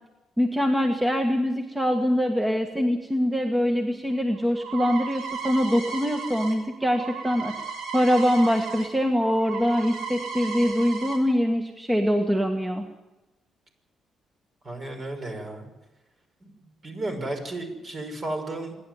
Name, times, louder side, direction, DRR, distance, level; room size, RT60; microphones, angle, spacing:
voice 1, 0.4-7.5 7.9-12.8, equal, 10° right, 3 dB, 1.8 m, -23 dB
sound 1, 4.1-8.9 9.2-11.2, right 5 dB, 80° right, 6.0 m, -36 dB
voice 2, 14.6-15.7 16.4-18.8, right 2 dB, 40° right, 4 dB, 6.0 m, -34 dB
27.0 x 11.0 x 9.4 m, 1.1 s
cardioid pair, 90°, 0 cm